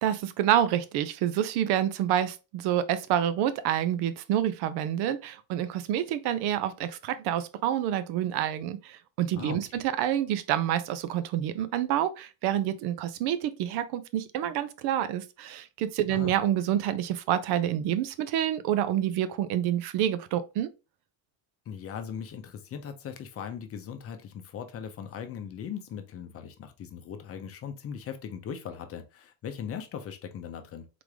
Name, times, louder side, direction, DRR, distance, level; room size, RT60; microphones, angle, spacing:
voice 1, 0.0-20.7, right 11 dB, 70° right, 0.6 m, -28 dB
voice 2, 9.3-9.8 16.1-16.4 21.7-30.9, left 8 dB, 35° left, 0.6 m, -39 dB
3.8 x 3.3 x 3.5 m
cardioid pair, 150°, 41 cm